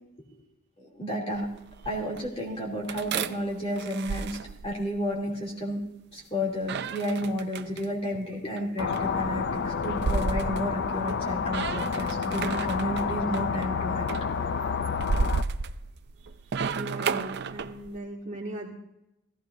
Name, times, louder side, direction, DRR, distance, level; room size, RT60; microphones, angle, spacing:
voice 1, 0.8-1.5 1.8-4.4 4.6-5.8 6.1-14.0, equal, 30° left, -3 dB, 2.9 m, -32 dB
sound 1, 1.3-2.3 2.9-5.1 6.6-7.9 8.6-11.2 11.5-13.0 13.3-13.7 14.1-18.0, right 5 dB, 55° right, 0.5 m, -33 dB
sound 2, 8.8-15.4, left 5 dB, 55° left, 0.5 m, -29 dB
voice 2, 16.7-18.7, right 1 dB, 35° right, -3 dB, 2.1 m, -38 dB
16.5 x 15.5 x 2.7 m, 0.87 s
head